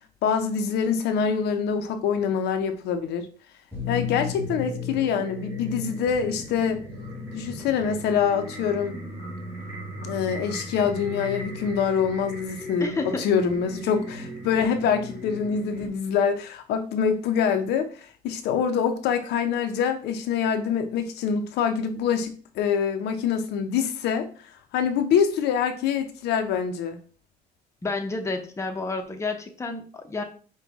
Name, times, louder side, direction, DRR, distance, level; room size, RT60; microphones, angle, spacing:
voice 1, 0.2-3.3 3.9-6.8 7.3-9.0 10.0-12.9 13.2-24.3 24.7-27.0, left 7 dB, 80° left, 0.6 m, -25 dB
sound 1, 3.7-15.9, left 2 dB, 10° right, 2.0 m, -36 dB
voice 2, 12.8-13.3 27.8-30.2, left 3 dB, 15° left, 0.7 m, -30 dB
5.3 x 2.2 x 3.5 m
cardioid pair, 110°, 17 cm